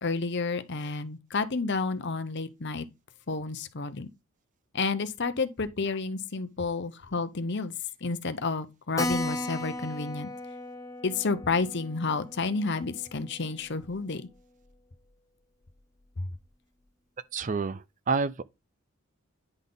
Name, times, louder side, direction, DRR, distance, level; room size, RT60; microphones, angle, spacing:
voice 1, 0.0-2.8 3.3-4.1 4.7-7.7 8.0-10.3 11.0-14.2, left 4 dB, 50° left, 0.8 m, -30 dB
Keyboard (musical), 9.0-14.0 14.3-14.4 14.7-14.8 15.0-15.1 15.7-16.1, left 1 dB, 15° left, 0.7 m, -37 dB
voice 2, 17.3-18.4, right 4 dB, 35° right, 0.4 m, -29 dB
10.0 x 3.6 x 4.0 m
head